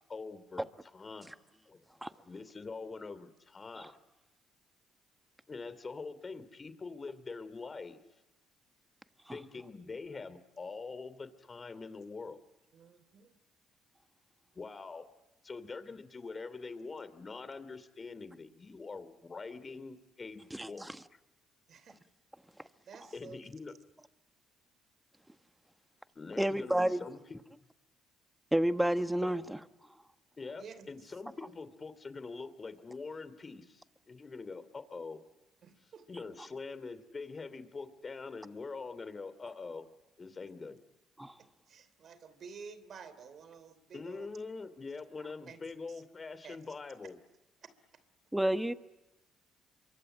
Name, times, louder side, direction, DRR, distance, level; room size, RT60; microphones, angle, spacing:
voice 1, 0.1-0.6 0.9-1.3 1.7-1.8 2.3-3.9 5.5-8.0 9.3-12.4 14.5-15.1 15.4-21.2 23.1-23.7 26.1-27.4 29.2-29.3 30.4-35.2 36.1-39.8 40.2-40.8 43.9-47.2, left 4 dB, 35° left, 2.7 m, -44 dB
voice 2, 12.7-13.4 21.7-22.0 22.6-23.4 30.5-30.9 35.6-36.1 41.4-44.3 45.2-45.6 45.9-46.0 46.4-46.6 47.6-48.0, right 6 dB, 60° right, 3.0 m, -52 dB
voice 3, 20.5-21.0 26.4-27.0 28.5-29.6 41.2-41.3 48.3-48.7, right 1 dB, 5° right, 1.3 m, -30 dB
26.5 x 24.0 x 8.9 m
supercardioid pair, 65°, 0 cm